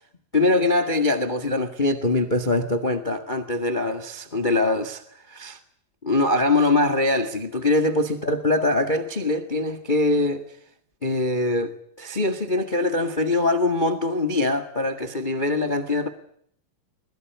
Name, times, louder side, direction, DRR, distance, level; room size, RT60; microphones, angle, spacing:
voice 1, 0.3-5.6 6.0-10.4 11.0-16.1, left 2 dB, 50° left, 0.5 m, -23 dB
22.5 x 21.0 x 9.3 m
omnidirectional pair, 4.5 m